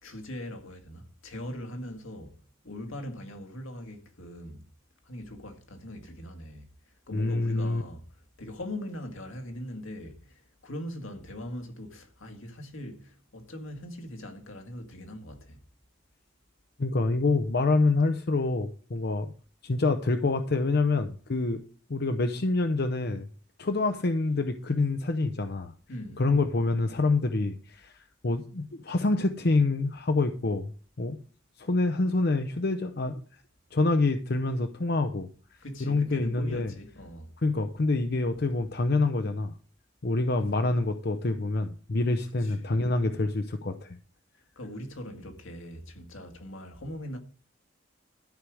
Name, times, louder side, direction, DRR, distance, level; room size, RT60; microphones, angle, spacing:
voice 1, 0.0-2.3 2.6-4.6 5.0-6.7 7.1-8.0 8.4-15.6 25.9-26.4 35.6-37.3 42.4-42.7 44.6-47.2, left 1 dB, 80° left, 2.0 m, -41 dB
voice 2, 7.1-7.8 16.8-19.3 19.6-21.6 21.9-23.3 23.6-25.7 26.2-30.7 31.0-31.2 31.6-33.2 33.7-35.3 35.8-36.7 37.4-39.5 40.0-44.0, left 3 dB, 50° left, 0.7 m, -26 dB
13.0 x 4.9 x 6.3 m
head